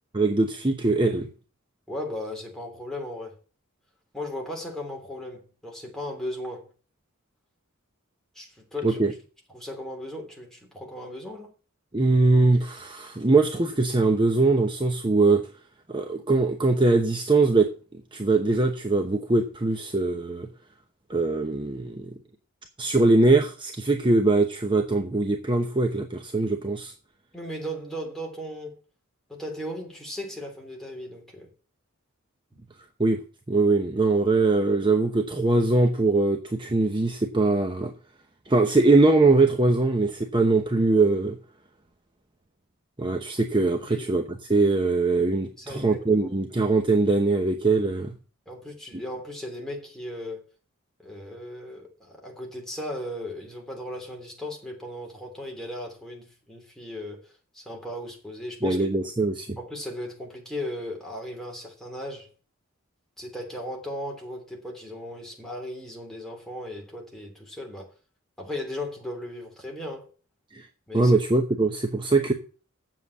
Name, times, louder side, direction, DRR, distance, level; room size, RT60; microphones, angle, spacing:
voice 1, 0.1-1.3 8.8-9.1 11.9-15.5 15.9-17.7 18.1-20.5 21.1-22.1 22.8-26.9 33.0-33.2 33.5-37.9 38.5-41.4 43.0-48.1 48.9-49.0 58.6-59.6 70.5-70.7 70.9-72.3, right 3 dB, 20° right, 0.9 m, -22 dB
voice 2, 1.9-3.3 4.1-6.7 8.3-9.0 9.5-11.5 27.3-28.8 29.3-31.5 43.9-44.1 45.6-46.3 48.5-50.4 51.0-58.8 59.6-62.3 63.2-67.9 68.4-70.1 70.9-71.1, left 1 dB, ahead, 3.2 m, -36 dB
7.7 x 7.6 x 8.4 m
head